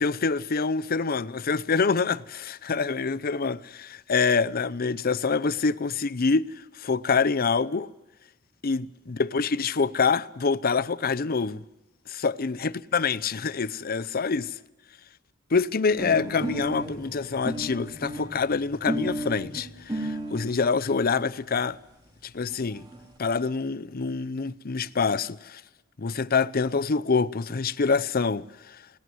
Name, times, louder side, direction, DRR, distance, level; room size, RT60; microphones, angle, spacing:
voice 1, 0.0-6.5 6.8-7.9 8.6-11.6 12.1-14.5 15.5-21.8 22.3-22.8 23.2-25.6 26.0-28.8, left 4 dB, 50° left, 0.6 m, -26 dB
sound 1, 16.0-20.6 21.4-21.5 21.7-21.8 22.1-22.2 22.4-23.0, right 1 dB, 20° right, 4.2 m, -33 dB
20.5 x 19.0 x 7.8 m
head